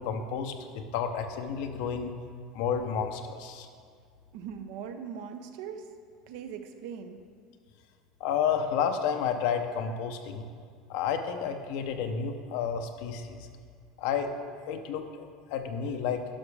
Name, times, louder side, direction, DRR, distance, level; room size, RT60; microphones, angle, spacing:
voice 1, 0.0-2.1 2.5-3.7 8.2-10.5 10.9-13.5 14.0-14.3 14.6-16.2, left 7 dB, 75° left, 6 dB, 0.7 m, -31 dB
voice 2, 4.3-5.9 6.3-7.2, right 7 dB, 75° right, 7 dB, 0.6 m, -40 dB
11.5 x 5.9 x 3.4 m, 2.1 s
supercardioid pair, 115°, 0 cm